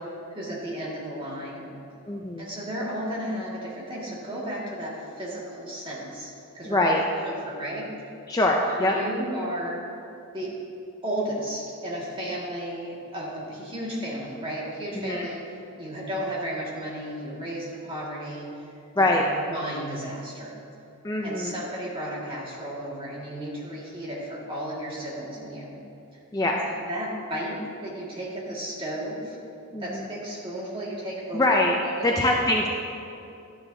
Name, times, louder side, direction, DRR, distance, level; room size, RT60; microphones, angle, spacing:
voice 1, 0.3-1.7 2.4-6.9 7.2-7.9 8.8-9.8 10.3-10.5 11.0-15.4 15.8-18.5 19.0-20.6 21.2-25.7 26.1-26.2 26.6-29.4 29.8-32.4, right 1 dB, 25° right, -5 dB, 1.8 m, -34 dB
voice 2, 2.1-2.5 6.7-7.0 8.3-9.0 14.9-15.3 19.0-19.2 21.0-21.6 26.3-26.6 29.7-30.1 31.3-31.8 32.0-32.7, left 1 dB, 15° left, 0 dB, 0.4 m, -23 dB
11.5 x 9.8 x 2.7 m, 2.6 s
head